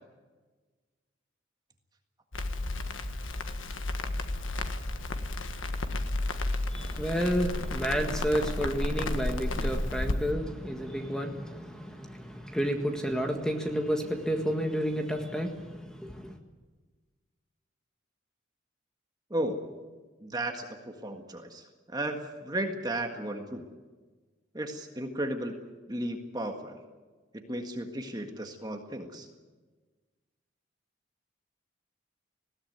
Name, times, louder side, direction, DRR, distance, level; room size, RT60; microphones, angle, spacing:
Crackle, 2.3-10.1, left 2 dB, 90° left, 1.6 m, -32 dB
voice 1, 6.7-16.4, equal, 5° left, 4 dB, 1.7 m, -31 dB
voice 2, 20.2-23.6 24.5-25.5 25.9-26.8 27.3-29.3, right 1 dB, 20° right, 4 dB, 1.7 m, -34 dB
20.5 x 17.0 x 9.4 m, 1.3 s
head